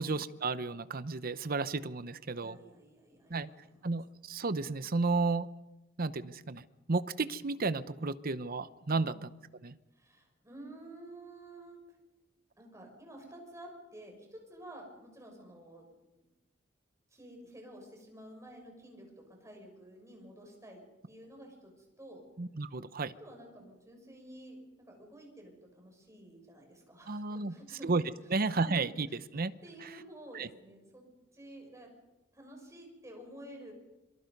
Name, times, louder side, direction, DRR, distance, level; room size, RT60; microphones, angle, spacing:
voice 1, 0.0-2.6 3.3-3.5 3.8-5.5 6.0-9.2 9.6-9.8 22.4-23.1 27.1-27.5 27.8-28.0 28.3-29.6 29.8-29.9 30.3-30.5, right 3 dB, 50° right, 14 dB, 0.8 m, -32 dB
voice 2, 2.4-3.9 8.8-9.2 9.9-11.8 12.6-15.9 17.1-22.2 23.2-27.9 28.2-28.3 28.6-28.7 29.6-31.1 31.3-31.9 32.3-33.7, right 1 dB, 15° right, 1 dB, 6.4 m, -51 dB
26.5 x 23.5 x 5.4 m, 1.0 s
head